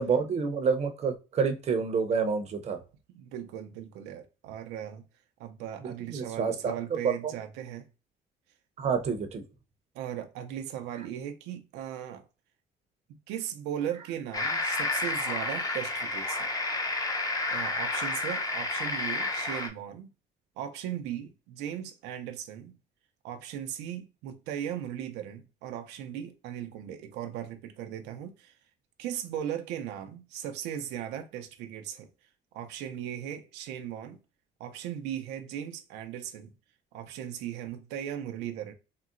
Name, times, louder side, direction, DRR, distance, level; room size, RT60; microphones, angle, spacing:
voice 1, 0.0-2.8 5.8-6.8 7.0-7.3 8.8-9.4, right 5 dB, 40° right, 0.6 m, -28 dB
voice 2, 3.1-5.1 5.4-7.9 9.9-12.2 13.1-16.5 17.5-20.1 20.6-22.8 23.2-28.6 29.0-32.1 32.5-34.2 34.6-36.5 36.9-38.7, right 10 dB, 90° right, 0.4 m, -38 dB
sound 1, 14.3-19.7, left 2 dB, 20° left, 0.5 m, -30 dB
3.7 x 2.0 x 2.4 m
cardioid pair, 110°, 17 cm